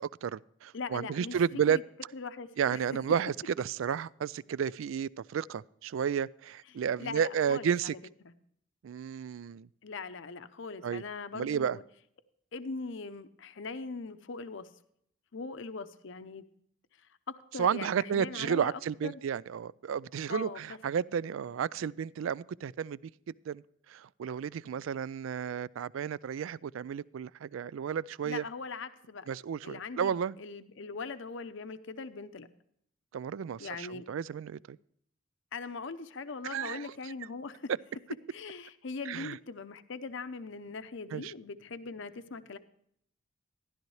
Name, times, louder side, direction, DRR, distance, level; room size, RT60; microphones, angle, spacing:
voice 1, 0.0-1.8 2.6-7.9 8.8-9.7 10.8-11.0 11.3-11.8 17.6-23.0 23.5-23.6 23.9-28.4 29.3-30.3 33.1-34.8 36.5-36.9 39.1-39.4 41.1-41.3, right 7 dB, 70° right, 0.3 m, -32 dB
voice 2, 0.7-1.4 1.7-1.8 2.1-2.8 6.7-8.0 8.2-8.3 9.8-11.8 12.5-14.7 15.3-16.4 17.0-19.2 20.3-20.8 24.6-24.9 28.2-29.3 29.6-32.5 33.6-34.1 35.5-37.7 38.3-42.6, left 4 dB, 65° left, 0.7 m, -41 dB
13.5 x 11.5 x 3.2 m
head